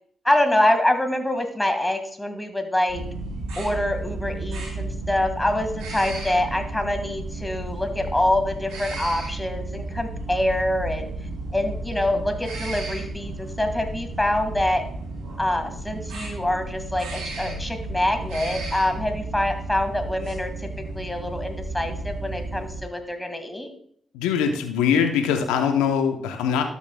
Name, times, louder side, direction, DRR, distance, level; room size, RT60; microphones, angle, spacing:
voice 1, 0.2-3.0 3.6-11.0 11.5-14.8 15.4-20.5 20.9-23.7, left 1 dB, 15° left, 6 dB, 1.9 m, -25 dB
sound 1, 2.9-22.8, right 2 dB, 80° right, 3.0 m, -33 dB
voice 2, 24.1-26.6, left 7 dB, 85° left, 6 dB, 0.8 m, -22 dB
12.5 x 7.1 x 2.3 m, 0.63 s
hypercardioid pair, 40°, 0 cm